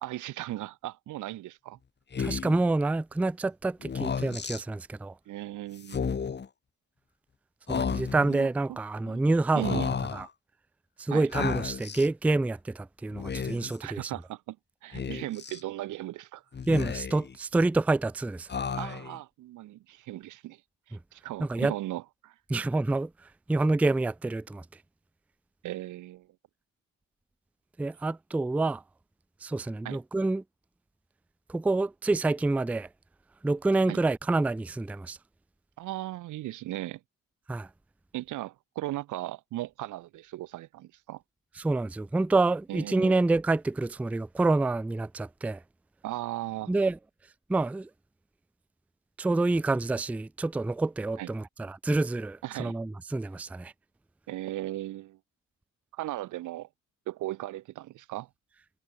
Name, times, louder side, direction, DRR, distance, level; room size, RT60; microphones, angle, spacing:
voice 1, 0.0-1.8 5.3-6.0 8.3-8.8 9.1-9.2 9.5-9.9 11.1-11.3 13.8-14.6 14.8-16.4 18.7-20.6 20.9-22.3 25.6-26.3 29.8-30.0 33.9-34.0 35.8-37.0 38.1-41.2 42.7-43.1 46.0-46.7 51.2-51.3 52.4-52.8 54.3-55.2 55.9-56.7 57.1-58.3, right 16 dB, 80° right, 1.0 m, -37 dB
Speech, 2.1-2.6 3.8-4.6 5.8-6.5 7.7-8.4 9.6-10.3 11.3-12.1 13.1-13.8 14.9-15.6 16.5-17.3 18.5-19.2, left 6 dB, 35° left, 1.6 m, -32 dB
voice 2, 2.2-5.1 7.7-9.8 10.1-10.3 11.0-14.1 16.7-18.5 20.9-21.0 21.4-21.7 22.5-23.1 23.5-24.6 27.8-28.8 29.4-30.4 31.5-32.9 33.4-35.2 37.5-37.7 41.6-45.6 46.7-47.0 47.5-47.9 49.2-53.7, right 2 dB, 5° right, 0.4 m, -27 dB
cardioid pair, 90°, 30 cm